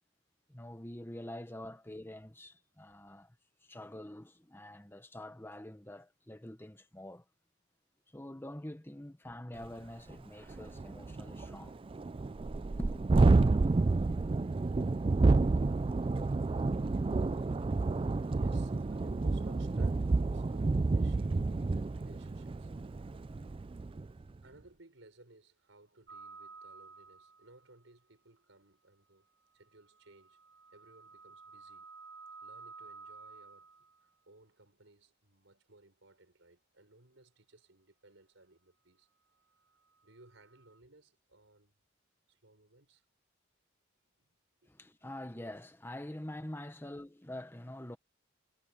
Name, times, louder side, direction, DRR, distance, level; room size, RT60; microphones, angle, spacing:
voice 1, 0.5-3.3 3.6-7.2 8.1-11.8 12.8-13.0 44.6-48.0, left 1 dB, 10° left, 1.1 m, -45 dB
Thunderstorm, 9.6-9.7 10.1-10.2 10.5-24.1, right 3 dB, 25° right, 0.3 m, -29 dB
voice 2, 18.2-22.7 24.4-29.3 29.5-30.4 30.7-31.9 32.4-33.8 34.0-39.1 40.0-41.7 42.3-43.0 44.2-44.3 44.6-44.7 45.0-45.1 46.7-46.9, right 2 dB, 75° right, 5.1 m, -61 dB
sound 1, 26.1-27.7 29.7-34.1 40.0-40.8, right 4 dB, 50° right, 1.6 m, -53 dB
head